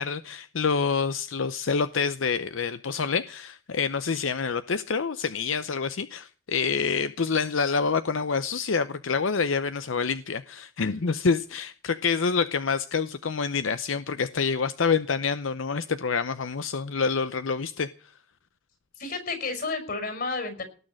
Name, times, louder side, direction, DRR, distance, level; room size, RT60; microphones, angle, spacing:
voice 1, 0.0-17.9, left 5 dB, 90° left, 0.7 m, -27 dB
voice 2, 19.0-20.6, left 3 dB, 55° left, 5.9 m, -31 dB
19.0 x 6.5 x 10.0 m
head